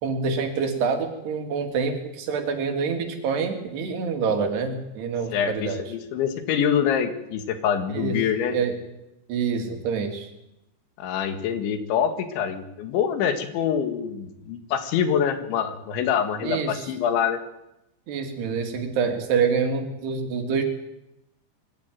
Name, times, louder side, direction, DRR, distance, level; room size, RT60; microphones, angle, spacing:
voice 1, 0.0-5.8 7.9-8.2 8.5-8.8 9.3-10.3 16.4-16.9 18.1-20.6, right 5 dB, 65° right, 5 dB, 4.3 m, -26 dB
voice 2, 5.3-8.6 11.0-17.4, left 8 dB, 75° left, 8 dB, 4.2 m, -25 dB
22.5 x 15.0 x 9.3 m, 0.88 s
omnidirectional pair, 5.3 m